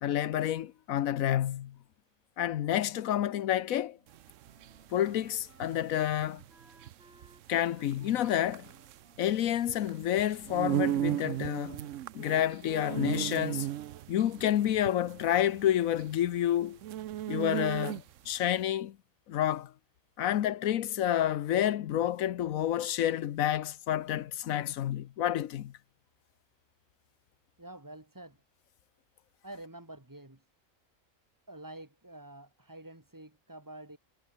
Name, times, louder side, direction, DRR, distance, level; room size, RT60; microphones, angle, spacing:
voice 1, 0.0-1.8 2.4-4.0 4.9-6.4 7.5-8.7 9.2-11.8 12.1-13.7 14.1-16.8 17.3-19.0 19.3-19.7 20.2-25.7, left 11 dB, 85° left, 1.2 m, -29 dB
Wind instrument woodwind instrument, 3.9-11.2, right 1 dB, 50° right, 6.8 m, -62 dB
sound 1, 4.1-18.3, right 13 dB, 70° right, 0.9 m, -36 dB
voice 2, 27.6-28.4 29.4-30.5 31.5-34.0, right 1 dB, 15° right, 2.2 m, -48 dB
omnidirectional pair, 1.4 m